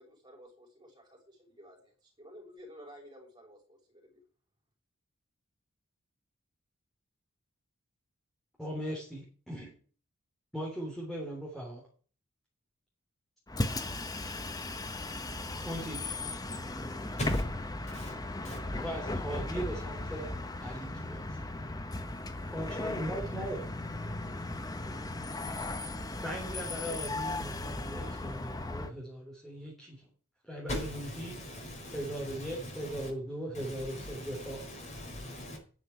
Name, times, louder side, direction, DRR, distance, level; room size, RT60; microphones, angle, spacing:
voice 1, 0.0-4.2, equal, 20° right, 5.6 m, -53 dB
voice 2, 8.6-9.7 10.5-11.8 15.6-16.0 18.7-20.3 20.6-21.4 22.5-23.7 26.2-30.0 30.5-31.4 31.9-34.6, right 1 dB, ahead, 3.5 m, -39 dB
Bus, 13.5-28.9, left 2 dB, 15° left, 1.0 m, -36 dB
voice 3, 30.7-33.1 33.5-35.6, left 1 dB, 35° left, 4.3 m, -40 dB
10.5 x 6.7 x 8.7 m
head